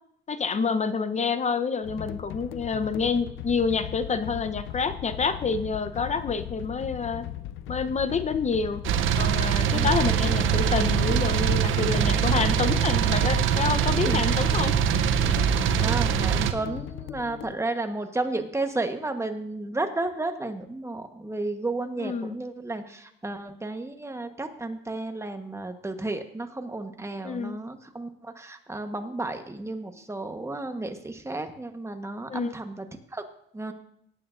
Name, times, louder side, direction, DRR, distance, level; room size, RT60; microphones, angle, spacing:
voice 1, 0.3-7.3 7.7-8.8 9.2-14.7 22.0-22.4 27.2-27.6 32.3-32.5, left 5 dB, 35° left, 10 dB, 0.8 m, -28 dB
sound 1, 1.8-17.6, left 13 dB, 85° left, 0.5 m, -37 dB
sound 2, 8.8-16.5, right 8 dB, 80° right, 0.7 m, -23 dB
voice 2, 15.4-32.9 33.1-33.3 33.5-33.7, right 2 dB, 15° right, 7 dB, 1.1 m, -32 dB
18.0 x 8.6 x 2.5 m, 0.73 s
cardioid pair, 90°, 20 cm